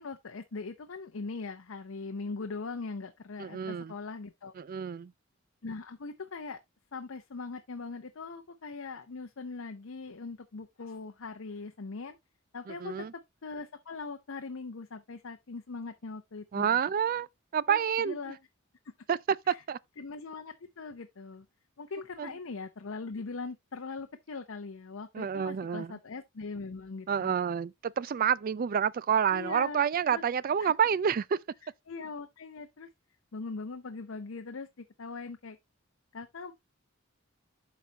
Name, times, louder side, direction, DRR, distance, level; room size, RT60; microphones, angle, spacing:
voice 1, 0.0-4.5 5.6-6.6 6.9-12.2 12.5-12.9 13.4-16.8 17.7-18.4 19.5-19.6 20.0-21.5 21.8-27.4 29.3-30.2 30.6-30.7 31.9-32.9 33.3-35.6 36.1-36.5, left 4 dB, 70° left, 0.7 m, -41 dB
voice 2, 3.4-3.9 4.6-5.1 12.7-13.1 16.5-17.3 17.5-18.2 19.1-19.2 19.5-19.8 22.2-22.3 25.1-25.9 27.1-31.4, right 8 dB, 45° right, 0.3 m, -28 dB
12.0 x 4.1 x 2.8 m
head